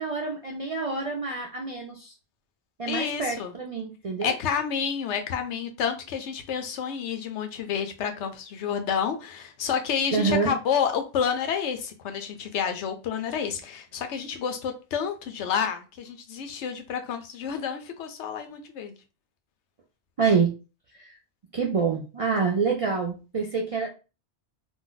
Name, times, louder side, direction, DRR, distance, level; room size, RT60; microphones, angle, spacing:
voice 1, 0.0-2.1 2.8-4.3 10.1-10.5 20.2-20.5 21.0-21.1 21.5-23.9, right 5 dB, 55° right, 0 dB, 0.3 m, -26 dB
voice 2, 2.9-3.5 4.2-18.9, left 7 dB, 85° left, 6 dB, 0.9 m, -29 dB
2.5 x 2.0 x 3.8 m, 0.32 s
omnidirectional pair, 1.1 m